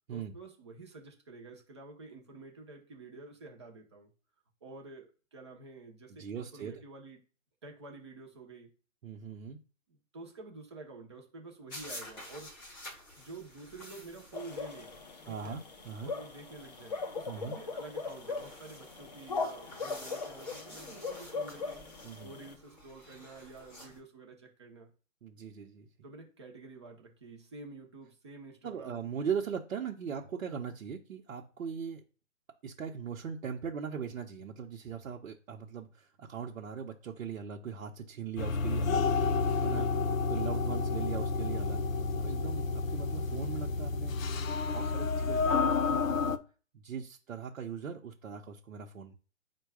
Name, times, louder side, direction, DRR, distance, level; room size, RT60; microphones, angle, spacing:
voice 1, 0.1-4.1 4.6-7.2 7.6-8.7 9.9-12.6 13.2-15.0 15.3-15.6 16.0-21.8 22.2-24.9 26.0-29.0 39.6-40.1, right 3 dB, 20° right, 0 dB, 0.6 m, -49 dB
voice 2, 6.1-6.8 9.0-9.6 15.2-16.1 17.3-17.6 22.0-22.3 25.2-25.9 28.6-32.0 32.6-39.1 39.6-39.9 40.3-44.1 44.6-46.4 46.7-49.1, right 7 dB, 75° right, -1 dB, 0.8 m, -40 dB
sound 1, 11.7-24.0, left 1 dB, 15° left, 0.9 m, -51 dB
sound 2, 14.3-22.5, left 4 dB, 35° left, 0.4 m, -40 dB
sound 3, 38.4-46.4, left 4 dB, 80° left, 0.6 m, -30 dB
4.5 x 2.2 x 4.7 m, 0.38 s
hypercardioid pair, 160°, 39 cm